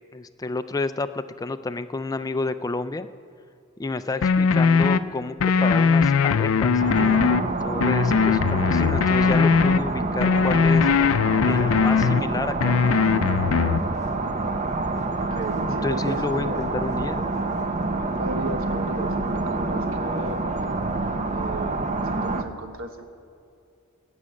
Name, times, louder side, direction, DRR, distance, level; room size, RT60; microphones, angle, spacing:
voice 1, 0.1-3.1 3.8-10.9 11.4-13.2 15.6-17.2, left 3 dB, 15° left, 11 dB, 0.3 m, -30 dB
sound 1, 4.2-5.0 5.4-7.4 7.8-9.8 10.2-12.2 12.6-13.8, left 5 dB, 85° left, 0.5 m, -20 dB
sound 2, 6.8-22.4, right 2 dB, 35° right, 0.7 m, -27 dB
voice 2, 15.2-16.6 18.2-19.2 19.4-20.4 21.3-23.0, right 2 dB, 75° right, 6 dB, 1.2 m, -35 dB
18.5 x 6.3 x 8.4 m, 2.6 s
head